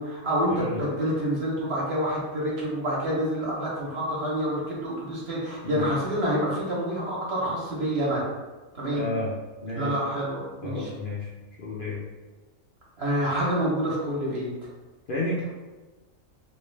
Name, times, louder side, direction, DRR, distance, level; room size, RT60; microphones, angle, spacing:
voice 1, 0.0-8.3 8.7-9.1 9.7-10.9 13.0-14.5, equal, 55° right, -6 dB, 1.2 m, -27 dB
voice 2, 8.9-9.3 9.6-9.9 10.6-11.3 11.6-12.0 15.1-15.5, left 2 dB, 55° left, -6 dB, 0.6 m, -31 dB
3.2 x 2.3 x 3.2 m, 1.2 s
omnidirectional pair, 1.3 m